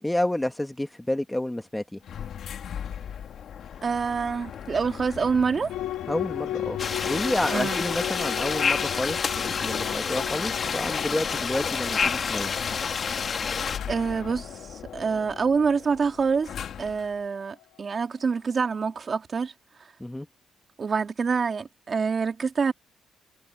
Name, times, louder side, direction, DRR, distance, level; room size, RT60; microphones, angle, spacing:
voice 1, 0.0-2.0 6.1-12.5 20.0-20.3, left 1 dB, 10° left, 1.8 m, -30 dB
sound 1, 2.0-17.2, left 9 dB, 65° left, 2.0 m, -40 dB
voice 2, 3.8-5.7 7.5-7.8 13.9-16.5 16.8-19.5 19.8-19.9 20.8-22.7, right 5 dB, 40° right, 2.6 m, -26 dB
sound 2, 5.7-17.6, left 13 dB, 90° left, 1.6 m, -37 dB
sound 3, 6.8-13.8, left 5 dB, 45° left, 2.2 m, -28 dB
cardioid pair, 90°, 0 cm